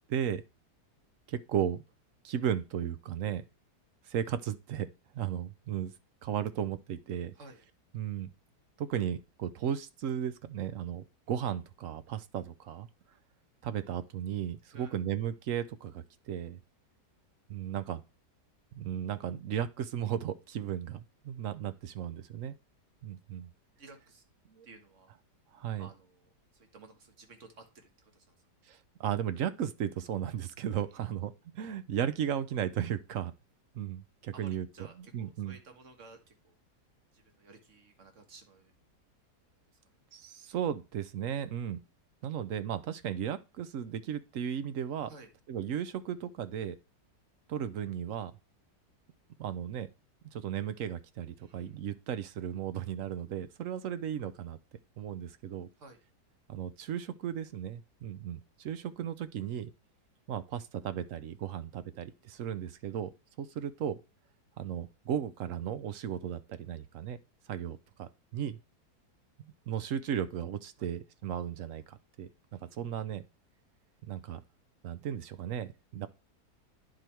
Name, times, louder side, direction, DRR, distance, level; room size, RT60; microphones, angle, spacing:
voice 1, 0.1-0.4 1.3-1.8 2.2-3.4 4.1-4.9 5.1-5.9 6.2-7.3 7.9-8.3 8.8-12.9 13.6-16.6 17.5-18.0 18.7-22.6 23.0-23.5 24.5-24.7 25.5-25.9 28.7-33.3 33.7-34.7 35.1-35.6 40.1-41.8 42.2-45.1 45.5-46.8 47.5-48.3 49.4-49.9 50.3-54.6 55.0-55.7 56.5-59.7 60.3-63.1 63.4-64.0 64.6-67.2 67.5-68.6 69.7-72.3 72.8-73.2 74.1-74.4 74.8-76.1, right 9 dB, 65° right, 0.9 m, -35 dB
voice 2, 23.8-24.2 24.6-25.1 25.8-28.5 30.9-31.0 34.3-36.5 37.1-38.7 45.1-45.3 51.4-51.8 55.8-56.0 70.8-70.9 72.5-72.9, right 3 dB, 45° right, 1.8 m, -55 dB
9.9 x 4.9 x 4.5 m
omnidirectional pair, 1.8 m